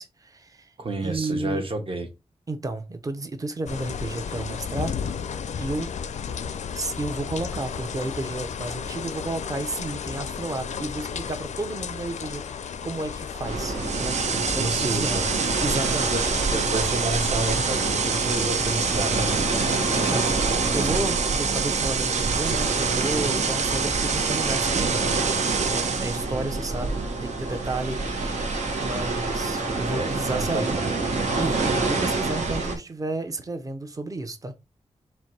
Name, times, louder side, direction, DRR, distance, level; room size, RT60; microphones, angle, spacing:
voice 1, 0.0-0.7 1.0-1.7 2.5-5.0 5.6-5.9 6.7-14.2 14.5-15.3 15.6-16.3 20.1-25.1 25.5-30.8 31.3-34.5, right 2 dB, 30° right, 0.7 m, -32 dB
voice 2, 0.8-2.1 14.3-15.2 16.1-16.2 16.5-19.5 29.9-30.9, right 2 dB, 50° right, 1.1 m, -30 dB
sound 1, 3.6-20.4, left 7 dB, 80° left, 0.4 m, -34 dB
sound 2, 13.4-32.8, right 3 dB, 90° right, 1.3 m, -28 dB
sound 3, 13.7-26.3, right 6 dB, 75° right, 0.6 m, -27 dB
4.4 x 2.6 x 4.5 m
wide cardioid pair, 130°, 12 cm